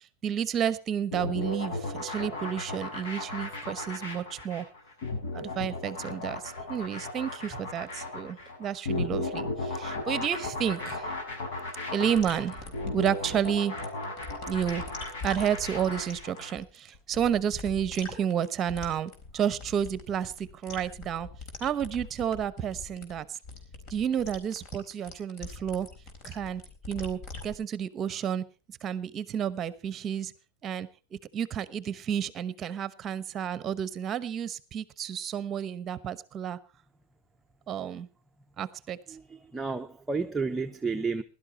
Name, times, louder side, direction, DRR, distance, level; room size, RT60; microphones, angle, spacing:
voice 1, 0.2-4.7 5.3-11.1 11.9-12.6 12.9-13.8 14.5-14.8 15.2-20.3 20.6-21.3 21.6-23.4 23.9-25.9 26.2-26.6 26.9-28.4 28.8-30.3 30.6-30.9 31.3-36.6 37.7-38.1 38.6-39.0, right 8 dB, 30° right, 1.0 m, -31 dB
sound 1, 1.1-16.5, left 2 dB, 75° left, 7.3 m, -35 dB
sound 2, 12.1-27.5, left 3 dB, 45° left, 4.0 m, -43 dB
voice 2, 39.1-41.2, right 4 dB, 10° right, 0.8 m, -31 dB
16.5 x 12.0 x 4.2 m
supercardioid pair, 130°, 0 cm